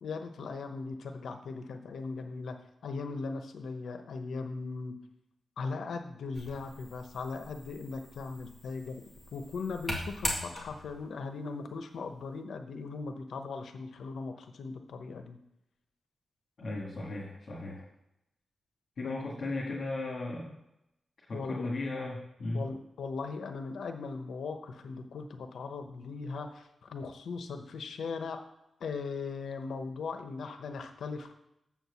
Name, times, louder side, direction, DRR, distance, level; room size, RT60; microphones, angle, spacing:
voice 1, 0.0-2.6 2.8-5.0 5.6-9.0 9.3-15.4 19.0-19.3 21.3-21.7 22.5-28.4 28.8-31.3, left 4 dB, 85° left, 6 dB, 0.9 m, -39 dB
sound 1, 6.3-11.0, equal, 5° right, 1.8 m, -40 dB
voice 2, 16.6-17.8 19.0-20.5 21.3-22.6, left 2 dB, 50° left, -6 dB, 2.0 m, -36 dB
7.4 x 4.6 x 7.0 m, 0.85 s
wide cardioid pair, 155°, 0 cm